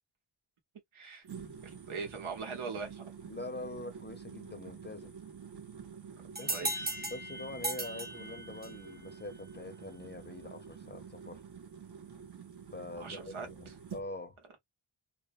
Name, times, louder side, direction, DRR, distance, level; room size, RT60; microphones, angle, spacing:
voice 1, 0.9-1.2 1.6-3.0 6.5-7.0 13.0-13.7, right 5 dB, 80° right, 1.0 m, -41 dB
sound 1, 1.2-14.1, right 7 dB, 50° right, 1.0 m, -48 dB
voice 2, 3.3-5.1 6.4-6.7 7.0-11.4 12.7-14.4, left 2 dB, 20° left, 0.6 m, -44 dB
sound 2, 6.3-8.9, right 1 dB, 20° right, 0.7 m, -37 dB
2.6 x 2.1 x 2.5 m
wide cardioid pair, 75°, 48 cm